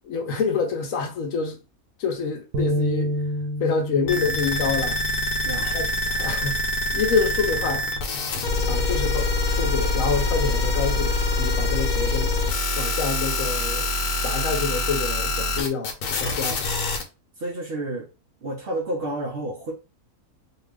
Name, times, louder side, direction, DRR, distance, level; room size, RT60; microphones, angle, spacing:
voice 1, 0.1-1.6 2.0-3.1 3.6-5.0 5.7-6.6 6.9-7.9 8.7-12.3 12.8-13.9 14.2-15.9 16.2-16.6, left 5 dB, 65° left, 1.0 m, -27 dB
sound 1, 2.5-8.8, left 1 dB, 80° right, 1.1 m, -31 dB
sound 2, 4.1-17.0, left 2 dB, 90° left, 1.2 m, -25 dB
voice 2, 5.4-5.8 17.4-18.1 18.4-19.7, right 1 dB, 60° right, 0.6 m, -30 dB
2.8 x 2.3 x 3.3 m
omnidirectional pair, 1.6 m